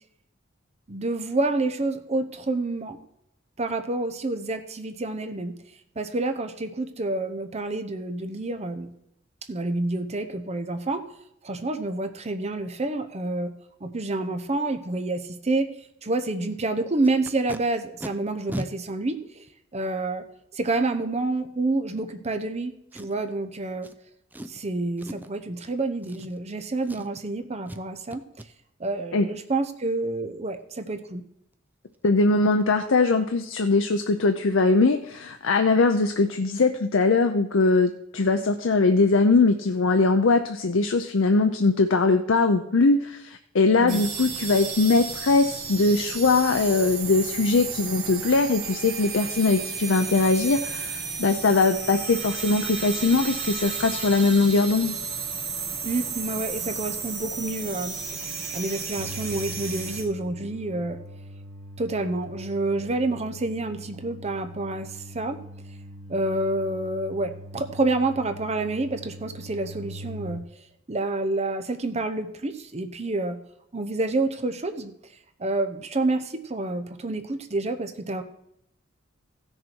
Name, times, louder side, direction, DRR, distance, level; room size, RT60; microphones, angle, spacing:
voice 1, 0.9-3.0 3.6-5.6 6.0-8.9 9.5-11.0 11.4-13.5 13.8-15.7 16.0-19.4 19.7-20.2 20.5-23.9 24.5-28.2 28.8-31.2 43.8-44.0 55.8-58.2 58.5-61.0 61.8-65.4 66.1-70.4 70.9-73.4 73.7-74.9 75.4-78.2, right 2 dB, 35° right, 8 dB, 0.8 m, -28 dB
Packing tape duct tape, 17.0-17.6 18.0-18.1 18.5-18.7 19.5-19.6 22.9-23.3 23.8-23.9 24.3-24.6 25.0-25.4 26.0-26.6 26.8-27.3 27.7-27.8 28.1-28.5 31.5-31.6 31.9-32.1 32.5-32.6 32.9-33.1 33.4-33.5, right 1 dB, 10° right, 0.4 m, -38 dB
voice 2, 32.0-55.0, left 3 dB, 70° left, 6 dB, 0.6 m, -21 dB
sound 1, 43.9-60.0, right 5 dB, 55° right, 2.0 m, -33 dB
sound 2, 59.0-70.4, equal, 80° right, 1.1 m, -42 dB
15.0 x 6.6 x 4.5 m, 0.78 s
head